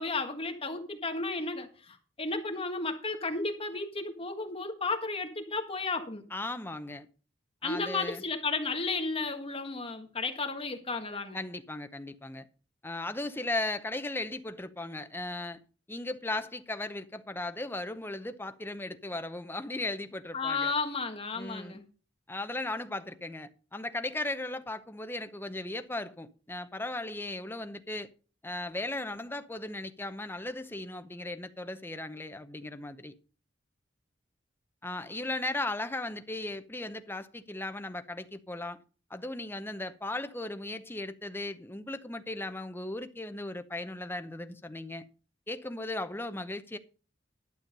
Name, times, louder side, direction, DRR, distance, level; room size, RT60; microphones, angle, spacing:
voice 1, 0.0-6.2 7.6-11.4 20.3-21.8, left 3 dB, 30° left, 1.6 m, -33 dB
voice 2, 6.3-7.1 7.6-8.2 11.3-12.5 12.8-15.6 15.9-20.7 21.3-21.8 22.3-28.1 28.4-33.1 34.8-38.8 39.1-45.1 45.5-46.8, left 2 dB, 10° left, 0.8 m, -37 dB
12.0 x 7.1 x 5.3 m
head